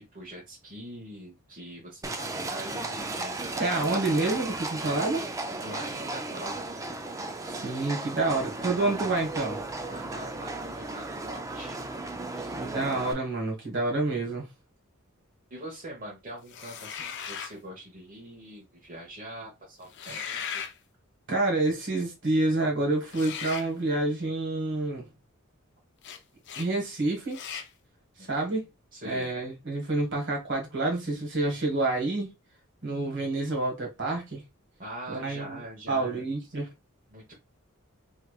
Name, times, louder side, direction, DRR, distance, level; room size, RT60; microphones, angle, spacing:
voice 1, 0.1-3.8 5.6-6.8 9.9-11.8 15.5-20.7 28.2-28.3 28.9-29.3 34.8-36.2 37.1-37.3, right 1 dB, 40° right, 1.0 m, -43 dB
Livestock farm animals working animals, 2.0-13.1, right 2 dB, 15° right, 0.4 m, -35 dB
voice 2, 3.6-5.3 7.4-9.6 12.4-14.5 21.3-25.1 26.5-27.4 28.3-28.6 29.0-32.3 32.8-34.4 35.1-35.6 35.9-36.7, right 2 dB, 60° right, 1.5 m, -28 dB
sound 1, 16.5-17.6 19.9-20.7 23.1-23.7 26.0-26.2 26.4-26.7 27.3-27.7, left 7 dB, 55° left, 0.5 m, -37 dB
3.2 x 3.0 x 2.3 m
head